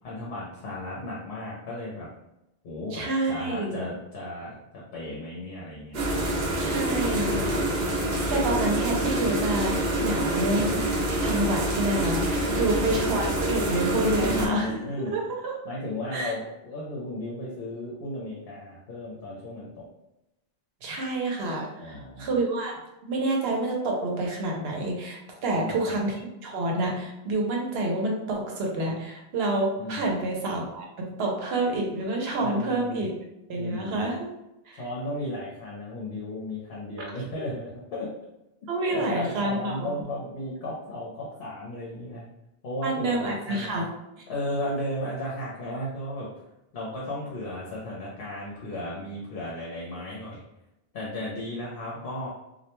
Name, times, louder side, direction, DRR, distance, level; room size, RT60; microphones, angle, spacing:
voice 1, 0.0-2.1 2.6-6.2 12.5-12.8 14.1-15.1 15.6-19.9 21.8-22.4 25.5-26.0 29.8-30.2 32.4-33.0 33.5-34.1 34.7-38.1 38.9-42.3 42.6-43.8 44.3-46.3 46.7-50.4 50.9-52.3, left 1 dB, 70° left, -5 dB, 0.8 m, -35 dB
voice 2, 2.9-3.8 6.6-7.7 7.9-10.8 11.2-14.8 15.1-15.5 16.1-16.3 20.8-33.1 33.5-34.3 34.7-34.8 38.7-40.0 42.8-43.8 44.2-44.3, right 2 dB, 80° right, 0 dB, 0.9 m, -28 dB
sound 1, 5.9-14.5, right 1 dB, 55° right, 0.6 m, -26 dB
2.3 x 2.1 x 2.9 m, 0.90 s
omnidirectional pair, 1.0 m